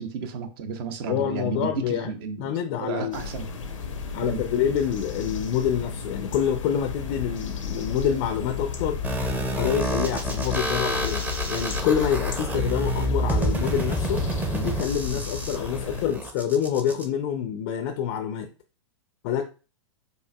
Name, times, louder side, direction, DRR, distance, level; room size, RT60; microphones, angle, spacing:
voice 1, 0.0-2.5 2.8-3.5 4.2-4.4 15.1-15.2, right 5 dB, 50° right, 0.6 m, -33 dB
voice 2, 1.1-2.1 2.4-3.2 4.1-9.0 9.6-14.2 14.5-18.5 19.2-19.4, left 9 dB, 45° left, 0.4 m, -27 dB
sound 1, 3.1-16.1, left 6 dB, 90° left, 0.7 m, -33 dB
sound 2, 9.0-17.0, right 1 dB, 10° right, 0.6 m, -29 dB
4.7 x 2.5 x 2.2 m
hypercardioid pair, 120°, 16 cm